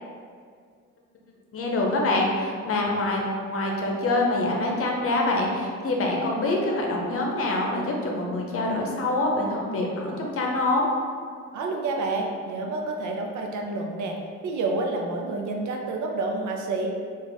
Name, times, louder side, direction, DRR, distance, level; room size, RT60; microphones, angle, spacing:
voice 1, 1.5-10.9, left 2 dB, 50° left, 0 dB, 0.8 m, -25 dB
voice 2, 11.5-14.2 14.4-16.9, right 3 dB, 70° right, 1 dB, 0.6 m, -29 dB
3.5 x 2.5 x 4.0 m, 2.1 s
cardioid pair, 90°, 30 cm